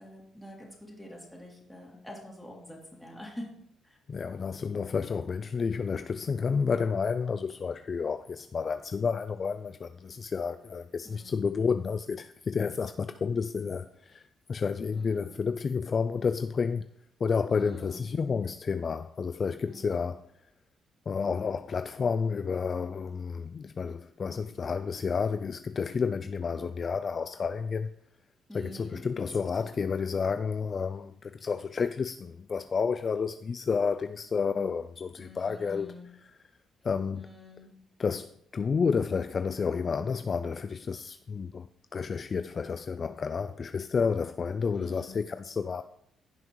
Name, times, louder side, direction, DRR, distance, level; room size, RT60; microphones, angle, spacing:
voice 1, 0.0-3.5 3.8-4.0 11.0-11.6 14.9-15.4 17.5-18.1 19.6-20.1 28.5-29.2 29.6-29.7 35.2-36.1 37.1-37.7 44.7-45.2, equal, 5° left, 3.0 m, -46 dB
voice 2, 4.1-14.2 14.5-16.8 17.2-20.2 21.1-27.9 28.5-35.9 36.2-36.3 36.8-37.3 38.0-41.7 41.9-45.8, left 5 dB, 40° left, 0.3 m, -30 dB
16.0 x 5.7 x 3.1 m
cardioid pair, 90°, 0 cm